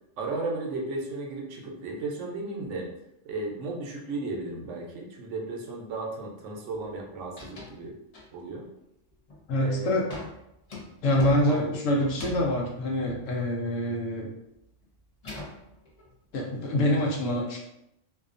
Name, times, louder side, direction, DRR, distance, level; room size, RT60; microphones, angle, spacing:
voice 1, 0.2-2.9 3.2-7.9 8.3-8.7 9.6-10.0 11.5-11.6, right 2 dB, 75° right, 0 dB, 0.9 m, -34 dB
sound 1, 6.7-7.0 7.2-7.8 8.1-8.6 9.1-9.5 10.1-14.1 14.4-16.5, left 2 dB, 45° left, 0.5 m, -43 dB
voice 2, 9.5-10.1 11.0-14.3 16.3-17.6, left 1 dB, 80° left, -1 dB, 1.0 m, -25 dB
2.7 x 2.3 x 2.4 m, 0.82 s
omnidirectional pair, 1.3 m